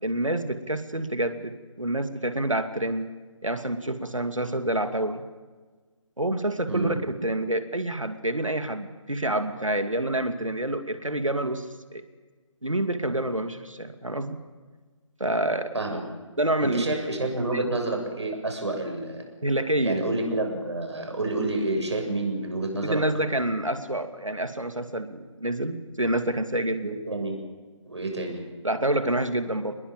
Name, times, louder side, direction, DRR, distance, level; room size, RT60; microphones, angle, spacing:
voice 1, 0.0-3.1 3.4-5.2 6.2-11.7 11.9-12.0 12.6-14.4 15.2-15.7 16.4-16.8 17.5-17.6 19.4-20.0 22.8-27.0 28.6-29.7, right 1 dB, 80° right, 9 dB, 2.5 m, -27 dB
voice 2, 16.6-19.2 19.8-23.0 26.8-27.4 27.8-28.5, right 2 dB, 60° right, 3 dB, 7.0 m, -29 dB
26.5 x 21.5 x 7.4 m, 1.4 s
figure-of-eight pair, 150°, 16 cm